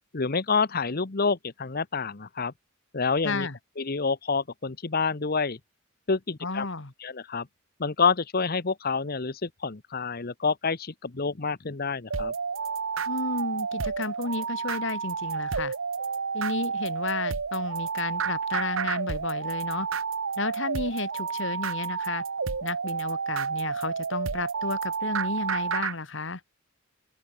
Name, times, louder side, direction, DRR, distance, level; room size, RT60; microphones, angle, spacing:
voice 1, 0.1-2.5 2.9-3.5 3.8-5.6 6.1-6.7 7.0-7.5 7.8-12.3, left 4 dB, 50° left, 1.0 m, -28 dB
voice 2, 3.2-3.6 6.4-6.9 13.1-15.7 16.3-19.9 20.4-22.2 22.6-26.4, left 3 dB, 65° left, 1.9 m, -32 dB
sound 1, 12.1-26.0, right 5 dB, 75° right, 0.9 m, -30 dB
open air
head